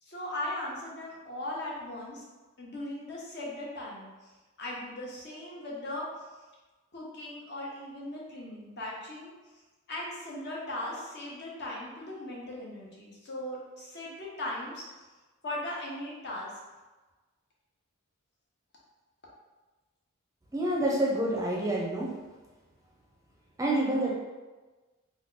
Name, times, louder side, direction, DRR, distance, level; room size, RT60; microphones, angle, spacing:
voice 1, 0.0-2.2 2.6-4.3 4.6-6.1 6.9-9.3 9.9-14.9 15.4-16.5, left 1 dB, 50° left, -4 dB, 0.8 m, -38 dB
voice 2, 20.5-22.2 23.6-24.1, right 1 dB, 15° right, -3 dB, 0.5 m, -28 dB
2.9 x 2.2 x 3.7 m, 1.2 s
head